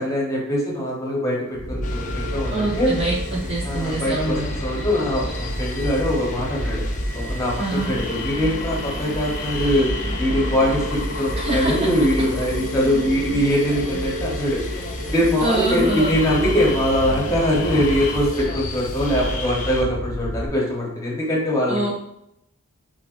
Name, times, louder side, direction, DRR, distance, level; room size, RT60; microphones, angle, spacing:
voice 1, 0.0-2.9 3.6-6.8 7.1-9.9 10.2-21.9, equal, 15° left, -4 dB, 1.0 m, -22 dB
sound 1, 1.5-20.5, equal, 50° right, 1.3 m, -29 dB
sound 2, 1.8-19.8, left 4 dB, 35° left, 0.4 m, -34 dB
voice 2, 2.5-4.5 7.6-7.9 11.4-11.8 15.4-16.1 21.7-21.9, right 2 dB, 25° right, -1 dB, 0.4 m, -24 dB
3.8 x 3.3 x 2.5 m, 0.78 s
head